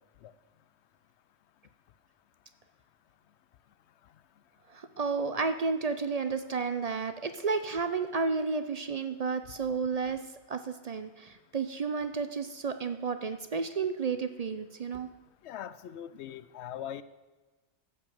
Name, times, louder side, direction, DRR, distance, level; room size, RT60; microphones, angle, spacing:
voice 1, 4.7-10.2 10.5-15.1, right 4 dB, 50° right, 9 dB, 0.5 m, -32 dB
voice 2, 15.4-17.0, left 10 dB, 70° left, 15 dB, 0.8 m, -40 dB
14.5 x 5.2 x 7.2 m, 1.2 s
omnidirectional pair, 1.2 m